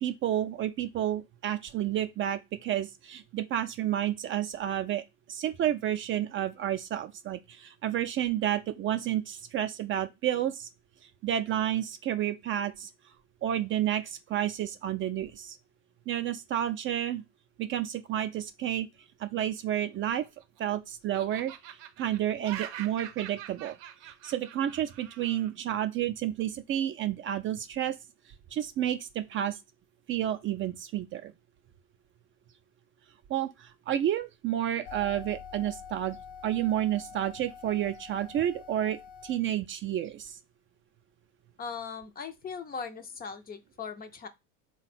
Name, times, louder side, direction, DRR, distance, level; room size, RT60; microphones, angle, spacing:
voice 1, 0.0-10.7 11.0-12.9 13.4-15.6 16.1-17.2 17.6-18.9 19.2-20.2 20.6-23.7 24.0-28.0 28.5-29.6 30.1-31.3 33.3-36.2 36.4-40.4, right 11 dB, 35° right, 0.4 m, -30 dB
Laughter, 19.9-20.8 21.1-25.5, right 11 dB, 80° right, 0.6 m, -44 dB
sound 1, 34.8-39.4, left 7 dB, 75° left, 0.5 m, -46 dB
voice 2, 41.6-44.3, left 6 dB, 25° left, 0.5 m, -39 dB
3.6 x 2.2 x 4.1 m
supercardioid pair, 95°, 35 cm